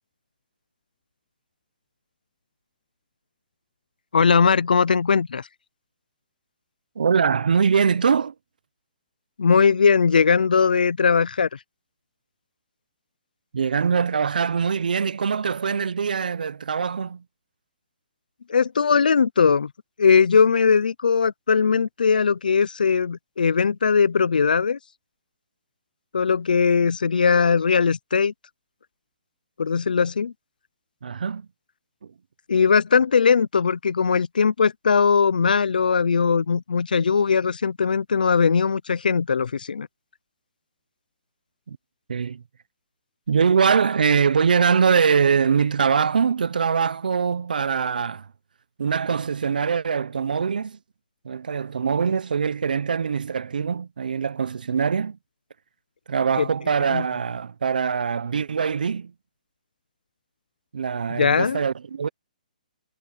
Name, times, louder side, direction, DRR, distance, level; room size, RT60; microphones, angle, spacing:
voice 1, 4.1-5.5 9.4-11.5 18.5-19.7 20.0-24.8 26.1-28.3 29.6-30.3 32.5-39.9 56.4-56.5 56.9-57.0 61.2-61.6, left 5 dB, 85° left, 0.7 m, -19 dB
voice 2, 7.0-8.3 13.5-17.2 31.0-31.5 41.7-41.8 42.1-42.4 43.3-48.3 48.8-50.8 51.2-55.2 56.1-59.1 60.7-62.1, right 6 dB, 80° right, 0.8 m, -23 dB
hypercardioid pair, 155°, 5 cm